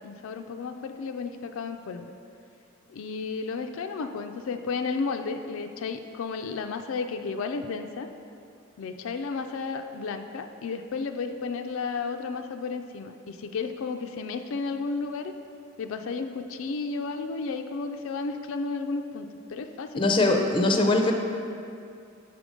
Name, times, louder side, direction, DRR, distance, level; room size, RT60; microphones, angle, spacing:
voice 1, 0.0-2.1 2.9-8.1 8.8-15.3 15.8-20.1, left 4 dB, 80° left, 7 dB, 0.4 m, -33 dB
voice 2, 19.9-21.1, left 2 dB, 25° left, 3 dB, 0.5 m, -21 dB
6.7 x 5.2 x 4.9 m, 2.5 s
head